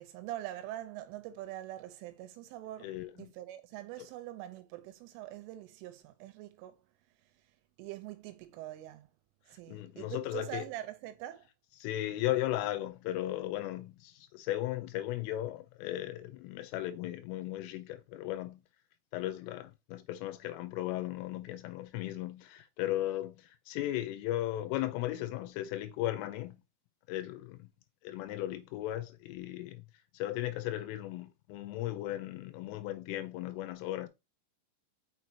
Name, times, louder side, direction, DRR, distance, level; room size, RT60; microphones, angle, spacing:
voice 1, 0.0-6.8 7.8-9.1 9.5-11.5, right 14 dB, 80° right, 3.1 m, -44 dB
voice 2, 2.8-3.3 4.0-4.1 9.7-10.6 11.8-18.6 19.1-26.6 27.1-27.7 28.0-29.9 30.1-34.1, left 14 dB, 85° left, 3.2 m, -36 dB
6.2 x 6.1 x 2.8 m
omnidirectional pair, 5.9 m